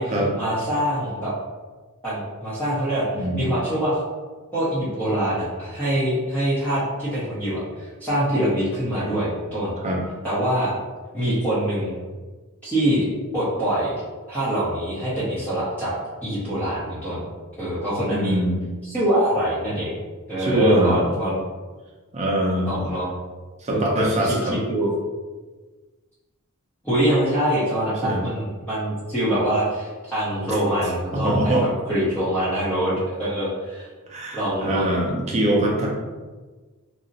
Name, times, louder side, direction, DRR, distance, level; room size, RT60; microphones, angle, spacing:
voice 1, 0.0-1.3 2.0-4.0 4.5-9.8 10.2-10.7 11.1-12.0 12.6-13.0 13.3-14.0 14.3-15.9 16.2-17.2 17.6-18.4 18.8-19.9 20.3-21.4 22.7-23.1 23.7-24.4 24.6-24.9 26.8-33.9 34.3-34.9, right 1 dB, 10° left, -11 dB, 0.7 m, -24 dB
voice 2, 3.1-3.5 9.8-10.0 18.1-18.6 20.4-21.0 22.1-22.9 23.6-24.6 28.0-28.2 31.1-31.7 34.1-35.9, right 1 dB, 30° right, -2 dB, 0.6 m, -23 dB
2.6 x 2.0 x 3.9 m, 1.3 s
head